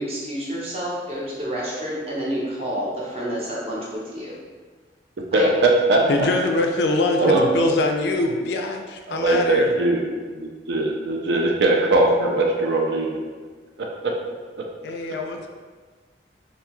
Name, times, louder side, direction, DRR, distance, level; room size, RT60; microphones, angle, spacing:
voice 1, 0.0-4.3 5.3-5.5 7.2-7.4, equal, 35° right, -6 dB, 0.6 m, -28 dB
voice 2, 5.3-6.3 7.2-7.7 9.1-10.0 10.3-13.2 13.8-14.1, right 2 dB, 70° right, 0 dB, 0.4 m, -20 dB
voice 3, 6.1-9.8 14.8-15.5, left 2 dB, 70° left, 3 dB, 0.3 m, -23 dB
2.6 x 2.3 x 2.9 m, 1.5 s
head